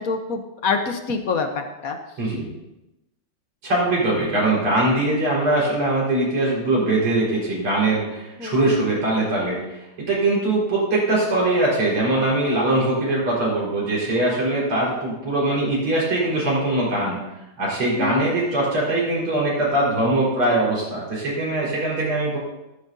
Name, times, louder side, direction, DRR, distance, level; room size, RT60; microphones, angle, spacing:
voice 1, 0.0-2.0 8.4-8.8 18.0-18.3, left 4 dB, 50° left, 5 dB, 1.3 m, -26 dB
voice 2, 3.6-17.2 17.6-22.4, right 2 dB, 85° right, -5 dB, 5.7 m, -22 dB
14.5 x 13.0 x 2.8 m, 0.95 s
omnidirectional pair, 2.4 m